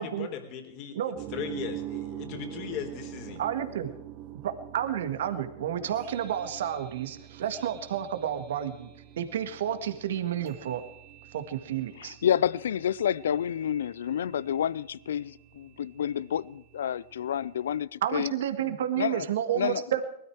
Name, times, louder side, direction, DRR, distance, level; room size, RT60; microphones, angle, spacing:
voice 1, 0.0-3.4, left 8 dB, 50° left, 3.7 m, -38 dB
sound 1, 1.1-17.8, right 13 dB, 45° right, 1.4 m, -45 dB
voice 2, 3.4-3.9 4.4-8.9 9.2-10.8 11.3-12.2 18.0-20.0, right 10 dB, 70° right, 1.7 m, -30 dB
voice 3, 12.0-18.3 19.0-19.2 19.5-19.8, left 9 dB, 75° left, 0.5 m, -29 dB
20.0 x 13.5 x 4.7 m
hypercardioid pair, 105°, 0 cm